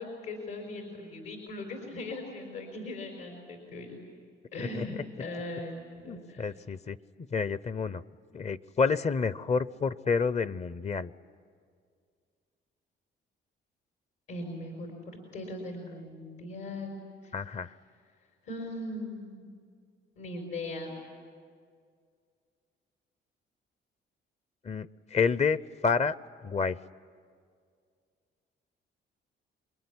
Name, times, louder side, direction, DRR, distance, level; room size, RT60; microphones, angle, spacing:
voice 1, 0.0-4.0 4.5-6.5 14.3-17.7 18.4-19.5 20.2-21.0, left 2 dB, 80° left, 1 dB, 4.6 m, -39 dB
voice 2, 6.1-7.0 7.3-8.0 8.3-11.1 17.3-17.7 24.6-25.6 25.8-26.2 26.4-26.8, left 5 dB, 35° left, 17 dB, 0.7 m, -29 dB
27.5 x 22.0 x 9.7 m, 2.1 s
cardioid pair, 90°, 20 cm